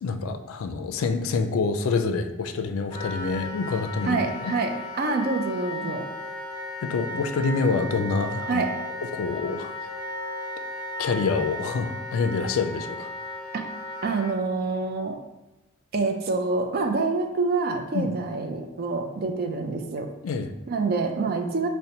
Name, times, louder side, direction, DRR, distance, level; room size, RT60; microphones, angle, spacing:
voice 1, 0.0-4.5 6.8-8.6 9.1-9.7 11.0-13.1 17.9-18.1 20.2-20.5, left 4 dB, 80° left, 7 dB, 0.3 m, -26 dB
Wind instrument woodwind instrument, 2.9-14.3, left 1 dB, 25° left, 0.7 m, -35 dB
voice 2, 4.0-6.1 8.5-8.7 13.5-13.6 14.0-15.2 15.9-20.1 20.7-21.7, right 3 dB, 50° right, 5 dB, 0.4 m, -26 dB
5.2 x 2.1 x 2.8 m, 1.0 s
head